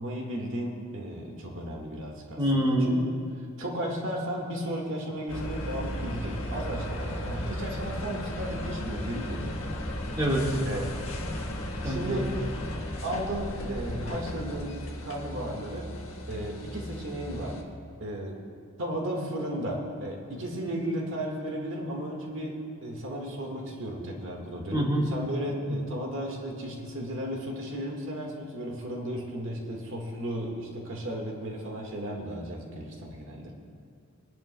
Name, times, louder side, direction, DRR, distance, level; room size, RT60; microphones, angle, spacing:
voice 1, 0.0-3.0 3.4-9.6 10.6-11.0 11.8-12.4 13.0-15.9 16.3-17.6 18.0-18.4 18.8-33.5, right 1 dB, 65° right, 0 dB, 1.7 m, -35 dB
voice 2, 2.4-2.9 10.2-10.6 11.8-12.2 24.7-25.1 25.7-25.8, equal, 20° right, -4 dB, 1.7 m, -25 dB
sound 1, 5.3-17.6, left 1 dB, 75° left, 1.4 m, -35 dB
23.5 x 11.0 x 2.2 m, 2.3 s
head